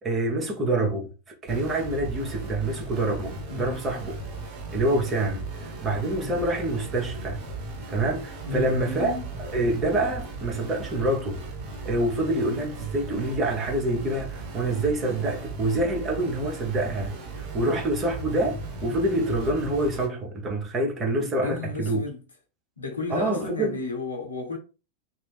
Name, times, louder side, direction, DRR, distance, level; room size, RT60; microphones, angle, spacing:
voice 1, 0.0-1.1 1.4-4.1 4.7-7.4 7.9-9.2 9.5-11.4 11.8-22.0 23.1-23.8, right 1 dB, 20° right, 0.9 m, -26 dB
sound 1, 1.5-20.1, right 3 dB, 40° right, 1.3 m, -37 dB
voice 2, 3.5-3.8 6.2-6.4 8.5-9.3 21.4-22.2 22.8-24.6, left 3 dB, 75° left, 0.8 m, -33 dB
2.6 x 2.0 x 3.5 m
figure-of-eight pair, 90°, 0 cm